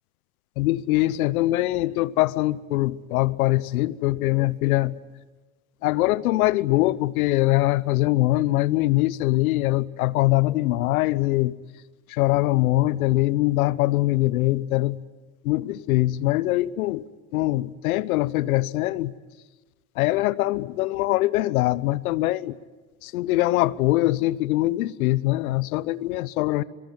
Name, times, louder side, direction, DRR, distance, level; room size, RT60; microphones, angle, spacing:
voice 1, 0.6-5.0 5.8-11.5 12.1-15.0 15.4-17.0 17.3-19.1 20.0-22.6 23.0-26.6, left 17 dB, 70° left, 1.1 m, -22 dB
25.5 x 23.5 x 9.7 m
hypercardioid pair, 85°, 44 cm